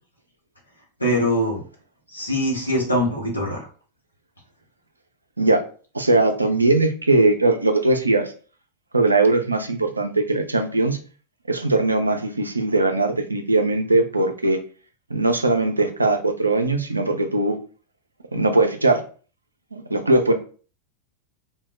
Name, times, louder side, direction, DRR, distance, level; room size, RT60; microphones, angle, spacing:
voice 1, 1.0-1.6 2.1-3.6, equal, 85° left, -2 dB, 0.9 m, -22 dB
voice 2, 5.9-8.3 8.9-11.0 11.5-14.6 15.1-17.6 18.3-19.0 19.7-20.3, right 2 dB, 80° right, 6 dB, 0.4 m, -20 dB
2.2 x 2.1 x 3.4 m, 0.39 s
figure-of-eight pair, 90°, 0 cm